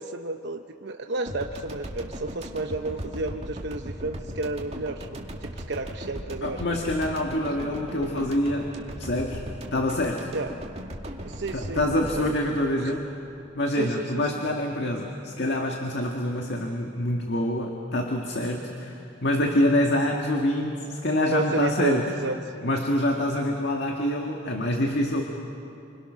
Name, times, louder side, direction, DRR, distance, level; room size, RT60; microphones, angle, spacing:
voice 1, 0.0-6.6 7.5-7.6 10.3-10.5 11.2-12.3 12.8-12.9 13.7-14.3 21.3-22.4, right 2 dB, 65° right, 5 dB, 0.8 m, -31 dB
sound 1, 1.3-13.7, equal, 35° right, 2.4 m, -38 dB
voice 2, 6.4-8.7 9.0-9.4 9.7-10.3 11.5-13.1 13.6-22.1 22.6-25.2, left 1 dB, 65° left, 1 dB, 1.8 m, -26 dB
29.5 x 26.5 x 6.3 m, 2.8 s
head